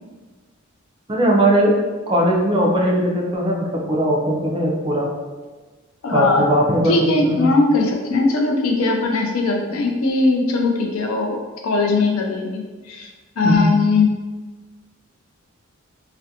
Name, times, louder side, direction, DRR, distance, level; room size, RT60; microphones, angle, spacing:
voice 1, 1.1-1.7 2.1-5.1 6.1-7.5 13.4-13.7, equal, 25° right, -2 dB, 0.4 m, -19 dB
voice 2, 6.0-6.6 6.8-13.1 13.4-14.1, left 3 dB, 80° left, 2 dB, 0.4 m, -20 dB
2.4 x 2.2 x 2.7 m, 1.3 s
head